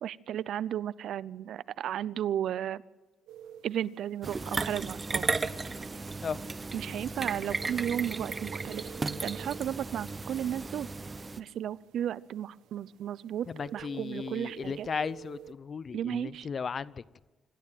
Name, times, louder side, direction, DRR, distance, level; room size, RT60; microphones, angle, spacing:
voice 1, 0.0-2.8 3.6-5.3 6.7-8.8 9.2-10.9 11.4-14.9 15.9-16.5, right 10 dB, 70° right, 0.6 m, -34 dB
sound 1, 3.3-15.5, right 9 dB, 90° right, 1.3 m, -51 dB
sound 2, 4.2-11.4, right 3 dB, 30° right, 1.1 m, -35 dB
voice 2, 13.5-17.0, left 6 dB, 45° left, 0.7 m, -36 dB
26.5 x 13.0 x 9.1 m
cardioid pair, 90°, 0 cm